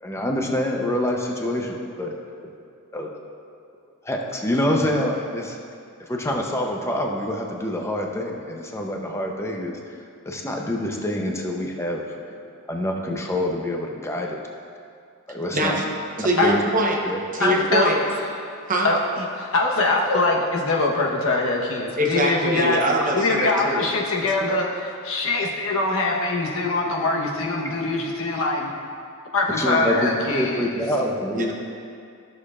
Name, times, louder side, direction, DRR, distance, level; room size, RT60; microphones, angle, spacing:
voice 1, 0.0-2.1 2.9-3.1 4.0-5.6 6.1-9.8 10.2-12.2 12.7-14.4 15.3-15.8 16.2-16.6 17.0-17.2 17.5-17.6 29.6-31.5, left 1 dB, 10° left, 0 dB, 0.7 m, -26 dB
voice 2, 15.5-17.0 17.3-18.0 18.7-18.9 22.0-23.8 24.4-24.5 30.0-30.2 31.3-31.5, right 1 dB, 40° right, 0 dB, 0.9 m, -23 dB
voice 3, 17.4-17.9 18.8-22.8 23.1-28.7 29.3-30.7, left 2 dB, 65° left, -1 dB, 1.0 m, -23 dB
13.5 x 6.5 x 2.4 m, 2.4 s
head